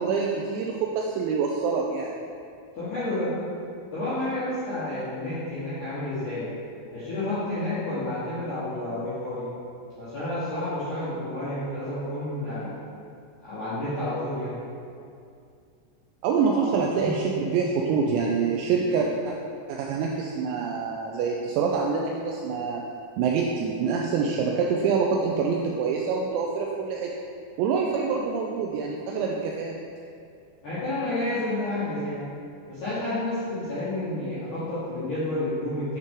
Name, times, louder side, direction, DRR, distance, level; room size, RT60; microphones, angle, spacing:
voice 1, 0.0-2.1 16.2-19.3 19.7-22.8 23.2-27.1 27.6-29.8, right 5 dB, 90° right, -1 dB, 2.5 m, -26 dB
voice 2, 2.8-3.3 3.9-6.5 6.9-9.5 10.0-12.7 13.4-14.6 16.5-17.2 30.6-32.2 32.7-36.0, left 1 dB, 70° left, -13 dB, 1.8 m, -30 dB
9.4 x 4.0 x 3.7 m, 2.4 s
omnidirectional pair, 5.6 m